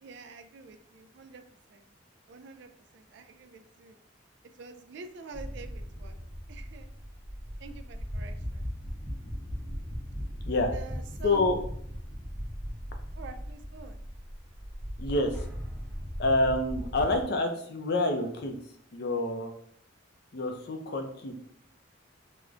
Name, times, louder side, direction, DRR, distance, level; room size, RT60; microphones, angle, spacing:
voice 1, 0.0-1.4 1.7-1.9 2.3-4.0 4.6-6.2 6.5-6.9 7.6-8.7 10.7-11.6 13.2-14.0, right 4 dB, 60° right, 8 dB, 0.3 m, -46 dB
sound 1, 5.3-17.2, equal, ahead, 0.5 m, -38 dB
voice 2, 11.2-11.6 15.0-15.5 16.2-18.6 18.9-19.5 20.3-21.4, left 2 dB, 55° left, 5 dB, 0.5 m, -27 dB
4.6 x 2.1 x 2.5 m, 0.65 s
head